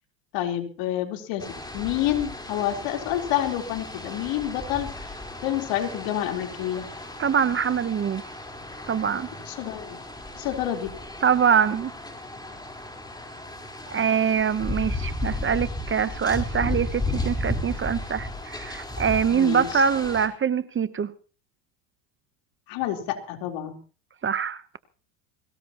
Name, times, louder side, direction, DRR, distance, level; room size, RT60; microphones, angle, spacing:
voice 1, 0.3-1.4 1.7-6.9 9.5-10.0 10.3-10.9 19.3-19.7 22.7-23.8, left 12 dB, 65° left, 4.0 m, -28 dB
sound 1, 1.4-20.3, left 2 dB, 10° left, 4.1 m, -34 dB
voice 2, 7.2-8.2 8.9-9.3 11.2-11.9 13.9-21.1 24.2-24.6, right 7 dB, 25° right, 0.9 m, -24 dB
22.5 x 18.0 x 3.0 m
hypercardioid pair, 90°, 48 cm